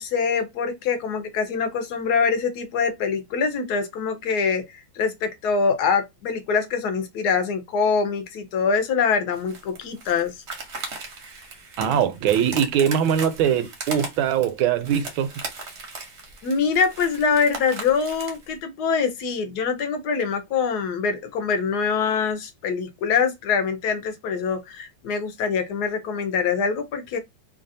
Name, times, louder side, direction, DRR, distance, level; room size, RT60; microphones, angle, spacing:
voice 1, 0.0-10.4 16.4-27.2, left 5 dB, 70° left, 1.0 m, -24 dB
sound 1, 9.3-18.5, right 3 dB, 55° right, 0.8 m, -37 dB
voice 2, 11.8-15.3, right 8 dB, 80° right, 1.3 m, -22 dB
3.2 x 2.3 x 2.5 m
omnidirectional pair, 2.2 m